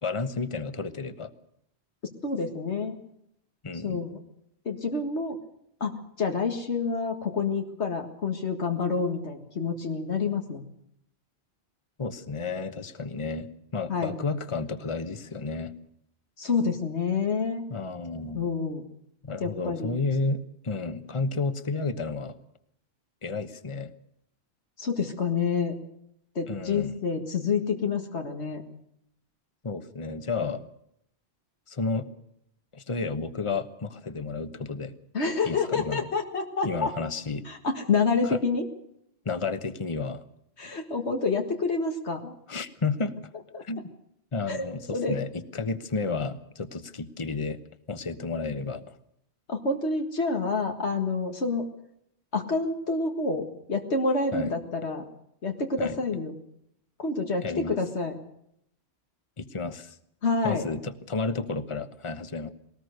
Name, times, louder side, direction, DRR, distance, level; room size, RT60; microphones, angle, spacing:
voice 1, 0.0-1.3 3.6-4.0 12.0-15.8 17.7-18.5 19.2-22.4 23.2-23.9 26.5-27.0 29.6-30.7 31.7-32.1 32.7-34.9 35.4-36.0 36.6-37.5 38.2-38.4 39.2-40.2 42.5-43.2 43.6-43.9 44.3-47.6 47.9-49.0 54.3-54.5 55.8-56.0 57.4-57.8 59.4-60.0 60.4-62.5, left 4 dB, 30° left, 11 dB, 1.2 m, -32 dB
voice 2, 2.2-3.0 3.7-4.2 4.7-5.4 5.8-10.7 13.9-14.1 16.4-17.6 18.3-18.8 19.4-19.9 24.8-25.7 26.4-28.6 35.1-36.9 37.5-38.6 40.6-42.4 43.5-43.6 44.5-44.6 44.9-45.2 49.5-51.6 52.3-55.0 55.4-56.3 57.0-58.1 60.2-60.7, left 4 dB, 90° left, 4 dB, 2.1 m, -28 dB
21.5 x 19.0 x 6.6 m, 0.74 s
omnidirectional pair, 1.1 m